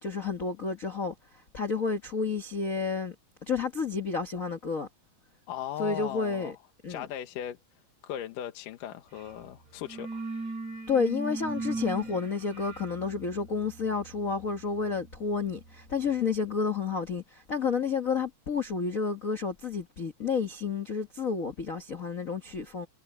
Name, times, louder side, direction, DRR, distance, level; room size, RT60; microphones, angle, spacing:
voice 1, 0.0-3.1 3.4-4.9 5.8-6.5 6.8-7.1 10.9-22.9, left 5 dB, 60° left, 0.8 m, -30 dB
voice 2, 5.5-6.6 6.9-10.2, left 11 dB, 75° left, 2.7 m, -38 dB
sound 1, 9.1-9.4 9.7-16.3, right 3 dB, 55° right, 8.5 m, -39 dB
omnidirectional pair, 3.9 m